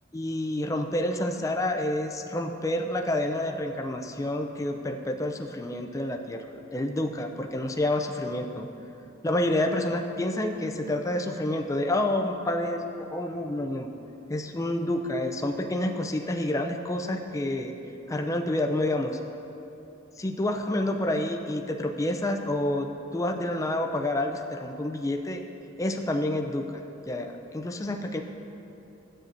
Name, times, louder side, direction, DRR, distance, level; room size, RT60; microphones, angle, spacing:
voice 1, 0.1-8.7 9.2-13.9 14.3-17.7 18.1-19.2 20.2-25.4 25.8-28.2, left 1 dB, 15° left, 3 dB, 0.4 m, -29 dB
12.0 x 8.8 x 2.6 m, 2.8 s
head